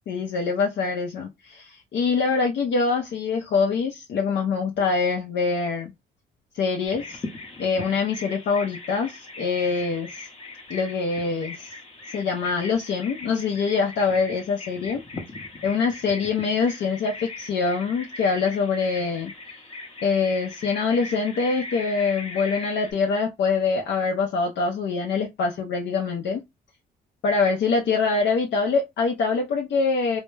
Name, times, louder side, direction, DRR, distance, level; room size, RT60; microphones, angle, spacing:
voice 1, 0.1-5.9 6.5-7.2 7.6-10.3 10.7-11.7 12.1-15.0 15.6-19.3 20.0-26.4 27.2-30.2, left 4 dB, 65° left, 0.5 m, -24 dB
Bird vocalization bird call bird song, 6.9-22.9, left 3 dB, 30° left, 0.7 m, -39 dB
2.2 x 2.0 x 3.1 m
cardioid pair, 90°, 20 cm